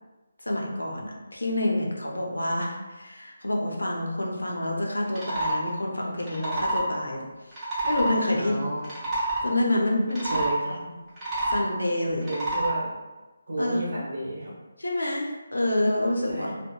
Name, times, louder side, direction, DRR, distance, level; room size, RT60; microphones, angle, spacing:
voice 1, 0.4-8.5 9.4-10.8 11.5-12.3 13.6-13.8 14.8-16.5, left 1 dB, 85° left, -1 dB, 0.5 m, -28 dB
sound 1, 5.1-5.6 6.2-6.9 7.5-8.1 8.8-9.4 10.1-10.5 11.1-11.7 12.2-12.7, right 1 dB, 15° right, 0.8 m, -27 dB
voice 2, 8.3-8.9 10.3-10.7 12.1-12.9 13.5-14.5 16.3-16.6, right 1 dB, 55° right, -5 dB, 0.9 m, -32 dB
2.8 x 2.0 x 2.2 m, 1.2 s
figure-of-eight pair, 155°, 0 cm